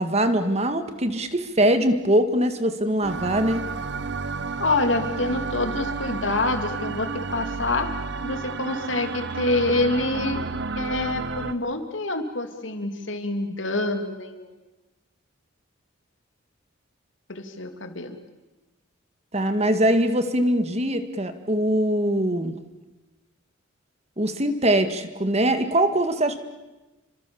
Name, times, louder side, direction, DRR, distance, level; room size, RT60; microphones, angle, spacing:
voice 1, 0.0-3.6 19.3-22.5 24.2-26.4, right 1 dB, 35° right, 8 dB, 2.0 m, -22 dB
sound 1, 3.0-11.5, right 4 dB, 60° right, 0.9 m, -31 dB
voice 2, 4.6-7.9 8.2-10.4 10.8-14.5 17.3-18.2, left 2 dB, 70° left, 6 dB, 2.9 m, -26 dB
29.0 x 25.0 x 7.1 m, 1.1 s
head